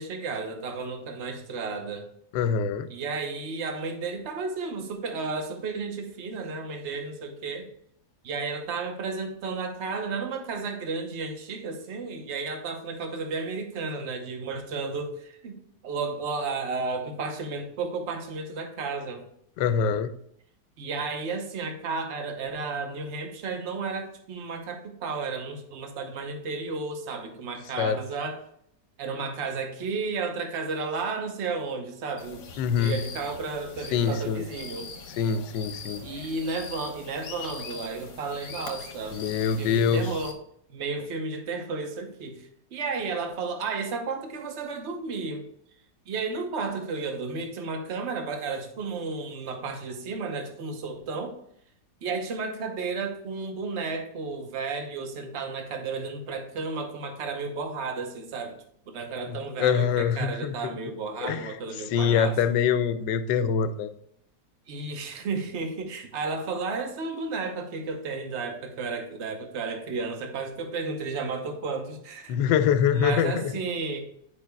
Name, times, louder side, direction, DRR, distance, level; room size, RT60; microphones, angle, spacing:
voice 1, 0.0-2.1 2.9-7.7 8.2-15.6 15.8-19.2 20.8-28.4 29.0-32.4 32.8-34.9 36.0-39.2 39.6-40.4 40.7-45.4 46.1-51.3 52.0-58.6 58.9-62.5 64.7-72.4 72.9-74.0, right 4 dB, 45° right, 5 dB, 1.1 m, -33 dB
voice 2, 2.3-2.9 19.6-20.1 27.8-28.0 32.6-33.0 33.9-34.4 35.2-36.0 39.1-40.1 59.3-60.8 61.2-61.5 61.9-63.9 72.3-73.5, left 7 dB, 85° left, 11 dB, 1.2 m, -24 dB
sound 1, 32.2-40.3, left 5 dB, 60° left, 1.3 m, -42 dB
9.9 x 5.4 x 2.3 m, 0.70 s
omnidirectional pair, 1.9 m